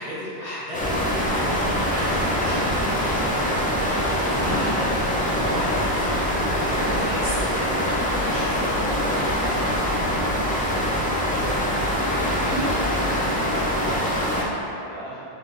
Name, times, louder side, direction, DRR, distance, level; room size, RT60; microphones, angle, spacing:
voice 1, 0.0-3.3 3.7-9.6, left 1 dB, 30° left, -12 dB, 1.4 m, -35 dB
sound 1, 0.7-14.4, equal, 15° left, 0.3 m, -24 dB
sound 2, 5.2-13.4, left 3 dB, 65° left, 0.9 m, -38 dB
voice 2, 12.4-15.2, right 1 dB, 70° right, -10 dB, 1.3 m, -40 dB
3.5 x 3.2 x 3.7 m, 2.9 s
omnidirectional pair, 1.1 m